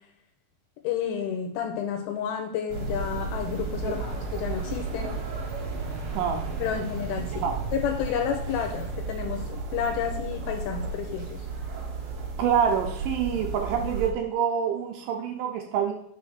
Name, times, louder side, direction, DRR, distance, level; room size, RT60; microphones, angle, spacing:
voice 1, 0.8-5.2 6.6-11.4, left 8 dB, 85° left, 4 dB, 2.5 m, -31 dB
sound 1, 2.7-14.1, right 3 dB, 65° right, 1.4 m, -33 dB
voice 2, 6.1-6.5 7.4-7.6 12.4-15.9, right 8 dB, 90° right, 3 dB, 1.9 m, -26 dB
5.6 x 3.2 x 5.6 m, 0.67 s
omnidirectional pair, 4.4 m